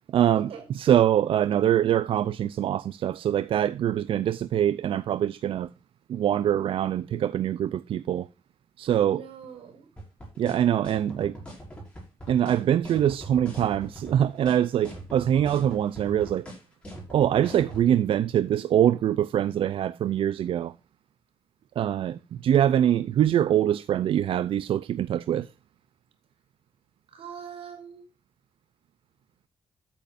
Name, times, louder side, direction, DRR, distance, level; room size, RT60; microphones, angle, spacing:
voice 1, 0.1-5.7 6.1-8.3 8.8-9.2 10.4-11.4 12.3-16.5 17.1-20.7 21.8-25.5, right 10 dB, 65° right, 0.4 m, -24 dB
voice 2, 8.8-9.9 27.1-28.0, right 7 dB, 85° right, 4.5 m, -42 dB
sound 1, 10.0-17.9, right 1 dB, 10° left, 6.2 m, -41 dB
13.5 x 8.7 x 2.6 m
wide cardioid pair, 155°, 10 cm